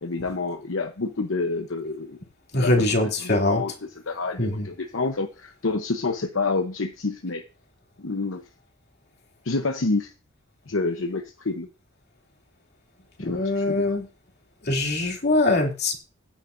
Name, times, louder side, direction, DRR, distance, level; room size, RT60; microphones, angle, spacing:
voice 1, 0.0-2.2 2.6-2.8 3.2-3.7 4.1-7.4 8.0-8.4 9.4-10.1 10.7-11.7 13.2-13.9, left 3 dB, 75° left, 6 dB, 0.9 m, -28 dB
voice 2, 2.5-3.6 4.4-4.7 13.2-14.1 14.6-15.9, left 2 dB, 55° left, 1 dB, 2.8 m, -23 dB
16.0 x 9.8 x 2.6 m, 0.32 s
head